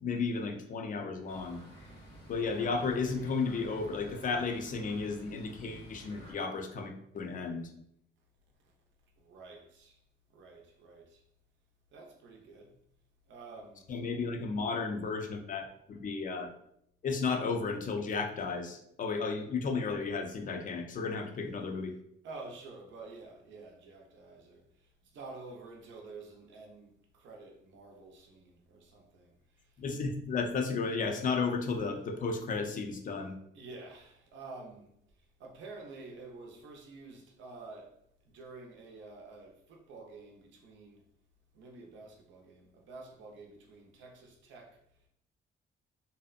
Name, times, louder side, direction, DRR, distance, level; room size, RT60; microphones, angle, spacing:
voice 1, 0.0-1.6 2.3-7.7 13.9-16.5 17.0-21.9 29.8-33.3, left 4 dB, 40° left, 0.5 m, -33 dB
sound 1, 1.3-6.3, right 1 dB, 80° left, 1.1 m, -51 dB
voice 2, 9.2-10.0 10.3-11.2 11.9-12.8 13.3-13.9 22.2-24.6 25.0-29.7 33.5-34.9 35.4-38.0 38.3-41.0 41.5-44.8, right 3 dB, 70° right, 0.6 m, -49 dB
2.6 x 2.1 x 2.4 m
cardioid pair, 90°, 20 cm